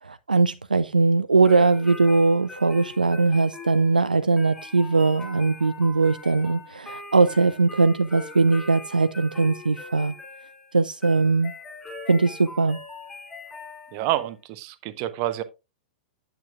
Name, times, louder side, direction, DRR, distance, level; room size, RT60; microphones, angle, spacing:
voice 1, 0.0-10.1 10.7-11.5 12.1-12.8, right 3 dB, 80° right, 0.4 m, -20 dB
sound 1, 1.4-14.2, left 3 dB, 10° left, 4.8 m, -42 dB
voice 2, 13.9-15.4, right 14 dB, 40° right, 0.9 m, -28 dB
9.0 x 8.8 x 2.4 m
figure-of-eight pair, 100°, 5 cm